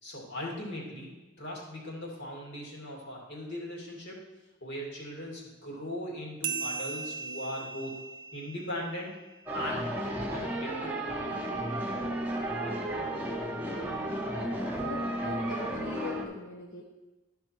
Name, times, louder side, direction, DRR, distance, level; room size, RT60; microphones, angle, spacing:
voice 1, 0.0-1.1 1.4-4.2 4.6-9.1 9.5-9.9 10.3-11.0, left 1 dB, 65° left, -2 dB, 2.6 m, -39 dB
sound 1, 6.4-9.5, right 6 dB, 70° right, 0.5 m, -38 dB
sound 2, 9.5-16.2, right 1 dB, 10° right, 1.1 m, -33 dB
voice 2, 14.8-16.8, left 2 dB, 90° left, -5 dB, 1.3 m, -41 dB
12.5 x 5.5 x 4.6 m, 1.1 s
head